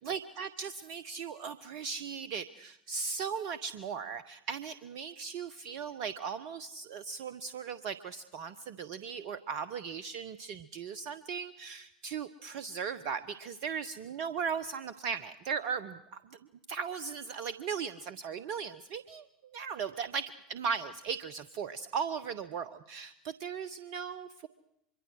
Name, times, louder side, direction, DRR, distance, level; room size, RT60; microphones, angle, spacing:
voice 1, 0.0-16.0 16.3-16.4 16.7-19.3 19.5-24.5, right 6 dB, 55° right, 14 dB, 1.1 m, -37 dB
24.5 x 23.0 x 6.5 m, 0.79 s
figure-of-eight pair, 75°, 0 cm